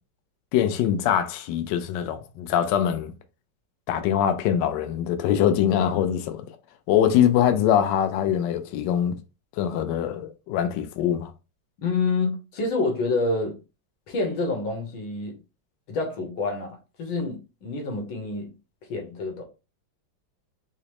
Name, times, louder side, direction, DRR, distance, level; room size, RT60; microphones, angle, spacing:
voice 1, 0.5-3.1 3.9-6.4 6.9-9.2 9.6-11.3, left 9 dB, 75° left, 1.1 m, -23 dB
voice 2, 11.8-13.6 14.1-15.4 15.9-18.5 18.9-19.4, left 3 dB, 90° left, 1.9 m, -27 dB
5.0 x 2.0 x 2.9 m
omnidirectional pair, 2.1 m